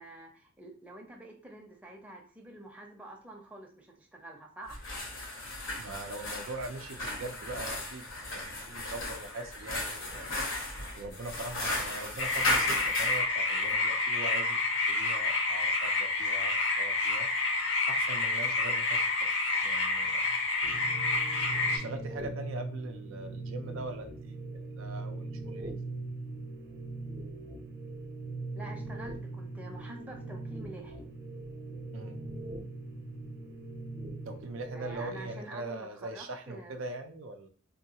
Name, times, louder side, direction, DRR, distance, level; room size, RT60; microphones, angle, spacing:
voice 1, 0.0-4.8 28.6-31.1 34.7-36.8, right 1 dB, 5° right, -1 dB, 0.6 m, -47 dB
sound 1, 4.6-13.2, left 1 dB, 80° left, 1.1 m, -35 dB
voice 2, 5.8-8.0 8.3-10.4 11.0-14.6 14.9-17.3 17.9-19.0 19.6-20.4 21.6-25.7 31.9-32.2 34.2-37.5, right 2 dB, 80° right, 5 dB, 0.5 m, -42 dB
sound 2, 12.2-21.8, left 3 dB, 60° left, 0.7 m, -29 dB
sound 3, 20.6-35.4, right 2 dB, 55° right, 0.8 m, -40 dB
3.6 x 2.3 x 2.8 m, 0.44 s
head